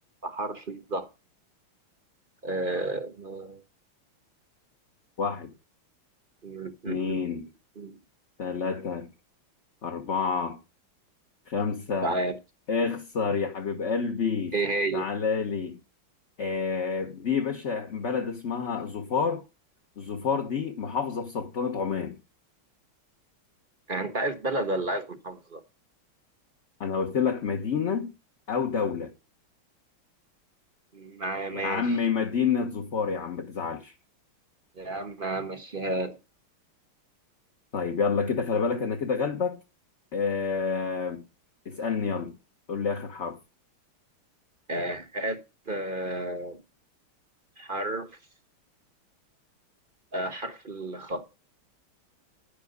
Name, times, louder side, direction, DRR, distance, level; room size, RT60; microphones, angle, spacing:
voice 1, 0.2-1.1 2.4-3.6 6.4-7.4 7.8-8.0 12.0-12.4 14.5-15.1 23.9-25.6 30.9-32.0 34.8-36.2 44.7-45.4 45.7-46.6 47.6-48.1 50.1-51.2, right 2 dB, 30° right, 1.1 m, -31 dB
voice 2, 5.2-5.5 6.8-7.5 8.4-9.1 9.8-10.6 11.5-12.2 12.7-14.5 14.9-15.8 16.4-19.4 20.0-22.2 26.8-28.1 28.5-29.1 31.5-33.9 37.7-39.6 40.1-41.2 41.6-42.3 42.7-43.4, left 5 dB, 40° left, 1.3 m, -28 dB
10.5 x 8.6 x 5.2 m
omnidirectional pair, 2.3 m